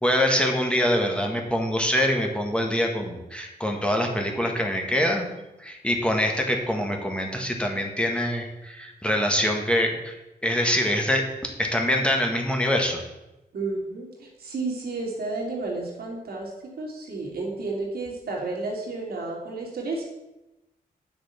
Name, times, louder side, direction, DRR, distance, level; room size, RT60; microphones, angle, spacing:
voice 1, 0.0-5.3 5.6-10.1 10.4-13.0, equal, 5° left, 2 dB, 1.7 m, -24 dB
voice 2, 13.5-20.0, right 3 dB, 90° right, -2 dB, 2.7 m, -32 dB
8.9 x 6.3 x 5.8 m, 0.98 s
wide cardioid pair, 95°, 16 cm